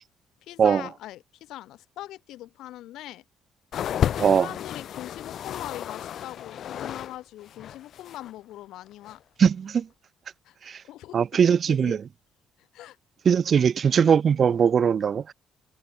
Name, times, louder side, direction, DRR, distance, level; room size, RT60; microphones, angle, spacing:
voice 1, 0.4-3.2 4.3-9.2 10.4-10.6 10.9-12.0 12.6-13.0 13.5-13.6, left 14 dB, 75° left, 2.1 m, -41 dB
sound 1, 3.7-7.2 7.4-8.3 9.0-9.2, left 10 dB, 55° left, 0.5 m, -32 dB
voice 2, 9.4-9.9 10.7-10.8 11.1-12.0 13.3-15.3, right 7 dB, 40° right, 0.3 m, -20 dB
cardioid pair, 140°, 0 cm